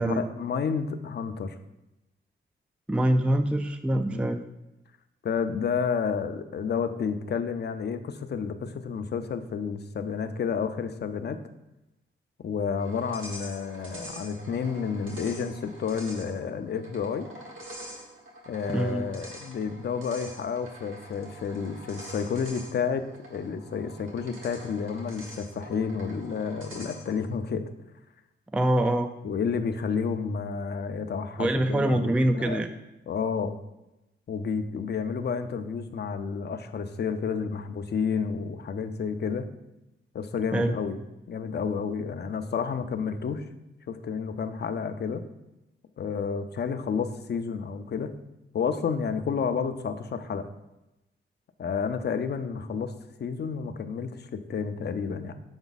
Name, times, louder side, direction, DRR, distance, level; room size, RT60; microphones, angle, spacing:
voice 1, 0.0-1.6 4.1-4.3 5.2-11.4 12.4-17.3 18.5-23.0 23.3-27.7 29.2-32.6 33.1-33.6 34.3-39.5 40.1-41.0 41.3-43.5 43.9-45.2 46.0-48.1 48.5-50.5 51.6-52.9 53.2-55.3, left 6 dB, 55° left, 9 dB, 0.6 m, -30 dB
voice 2, 2.9-4.4 18.7-19.1 28.5-29.1 31.4-32.7 40.5-40.8, right 1 dB, 5° right, 7 dB, 0.3 m, -24 dB
sound 1, 12.8-27.3, equal, 75° right, 1.6 m, -45 dB
7.1 x 4.5 x 4.0 m, 0.94 s
wide cardioid pair, 105°, 21 cm